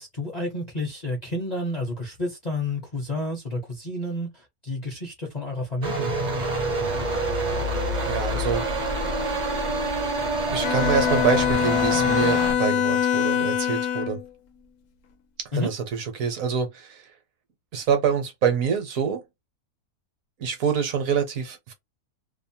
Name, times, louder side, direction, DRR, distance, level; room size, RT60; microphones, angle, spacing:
voice 1, 0.0-6.2 15.5-15.7, left 1 dB, 40° left, 0.7 m, -30 dB
sound 1, 5.8-12.5, right 1 dB, 40° right, 0.6 m, -27 dB
voice 2, 8.0-8.7 10.5-14.2 15.4-17.1 17.7-19.2 20.4-21.7, right 7 dB, 65° right, 1.2 m, -26 dB
Bowed string instrument, 10.6-14.3, left 9 dB, 80° left, 1.1 m, -23 dB
2.9 x 2.0 x 2.7 m
omnidirectional pair, 1.6 m